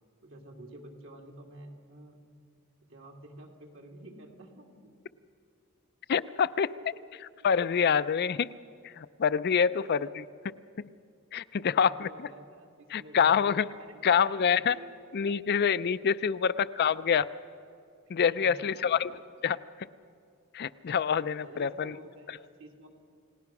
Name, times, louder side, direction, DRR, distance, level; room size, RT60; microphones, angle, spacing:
voice 1, 0.2-2.2 2.8-4.9 6.4-7.0 9.6-10.1 10.9-11.0 11.5-13.5 13.8-15.0 16.3-16.5 18.2-18.9 21.4-22.9, right 1 dB, 65° right, 1 dB, 2.8 m, -50 dB
voice 2, 6.1-6.7 7.4-8.5 8.8-10.2 11.3-12.1 12.9-13.7 14.0-14.8 15.1-17.3 18.1-19.1 19.4-19.6 20.5-21.9, left 7 dB, 50° left, 15 dB, 0.4 m, -26 dB
29.5 x 18.0 x 5.9 m, 2.4 s
head